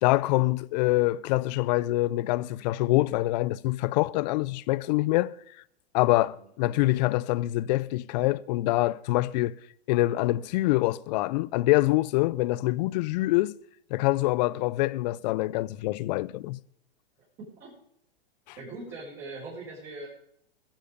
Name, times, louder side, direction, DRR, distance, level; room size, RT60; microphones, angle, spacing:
voice 1, 0.0-5.3 5.9-9.5 9.9-13.5 13.9-16.6 18.5-18.6, left 18 dB, 45° left, 0.5 m, -25 dB
voice 2, 17.4-17.7 18.6-20.1, right 2 dB, 35° right, 5.4 m, -41 dB
22.0 x 7.4 x 5.2 m
hypercardioid pair, 130°, 32 cm